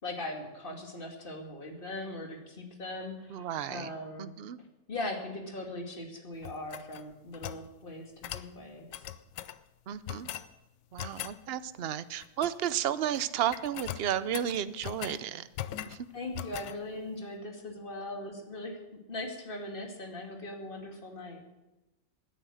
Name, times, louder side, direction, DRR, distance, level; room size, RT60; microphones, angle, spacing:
voice 1, 0.0-4.4 4.9-9.1 16.1-21.4, left 1 dB, 30° left, 3 dB, 2.5 m, -40 dB
voice 2, 3.3-3.9 4.2-4.6 9.9-10.3 10.9-15.5 15.9-16.0, right 10 dB, 60° right, 14 dB, 0.6 m, -33 dB
sound 1, 6.4-7.7 8.2-8.5 8.9-9.6 10.1-10.5 11.0-11.4 12.2-12.8 13.0-13.3 13.5-15.2 15.5-16.0 16.3-16.8, left 12 dB, 85° left, 1.3 m, -40 dB
18.0 x 9.9 x 6.4 m, 1.0 s
omnidirectional pair, 1.8 m